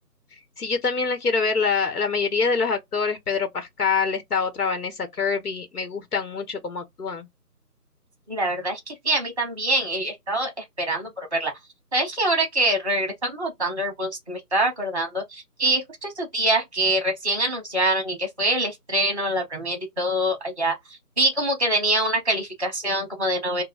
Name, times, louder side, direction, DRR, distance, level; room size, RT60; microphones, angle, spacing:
voice 1, 0.6-7.3, left 5 dB, 70° left, 1.2 m, -25 dB
voice 2, 8.3-11.5 11.9-20.7 21.2-23.6, right 1 dB, 20° right, 0.9 m, -25 dB
3.1 x 2.2 x 2.2 m
figure-of-eight pair, 165°, 47 cm